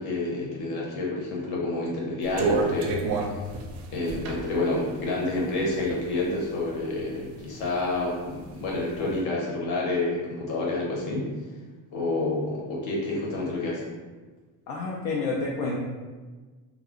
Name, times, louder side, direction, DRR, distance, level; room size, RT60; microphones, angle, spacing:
voice 1, 0.0-3.4 3.9-11.2 11.9-13.8, left 2 dB, 60° left, -4 dB, 0.9 m, -29 dB
sound 1, 2.2-6.2 6.7-7.7 8.0-9.0, right 4 dB, 90° right, 0.5 m, -30 dB
voice 2, 14.7-15.8, left 3 dB, 75° left, -3 dB, 0.5 m, -29 dB
2.3 x 2.1 x 3.6 m, 1.3 s
cardioid pair, 175°, 36 cm